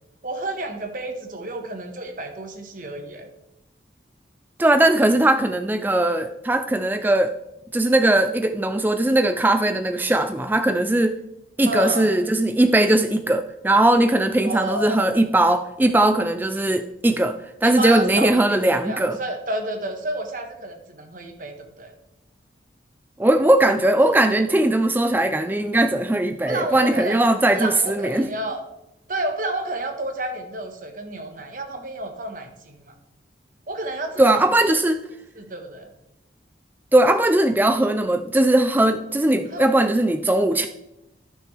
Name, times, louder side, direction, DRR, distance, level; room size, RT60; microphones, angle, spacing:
voice 1, 0.2-3.3 11.6-12.1 14.4-15.1 17.6-21.9 24.0-24.1 26.5-27.3 27.5-28.7 29.1-32.9 33.7-34.4 35.3-35.9 39.5-39.6, right 1 dB, 45° right, 4 dB, 1.3 m, -30 dB
voice 2, 4.6-7.3 7.7-11.1 11.6-19.2 23.2-28.3 34.2-35.0 36.9-40.7, right 1 dB, 10° right, 8 dB, 0.3 m, -19 dB
14.0 x 6.2 x 3.3 m, 0.87 s
head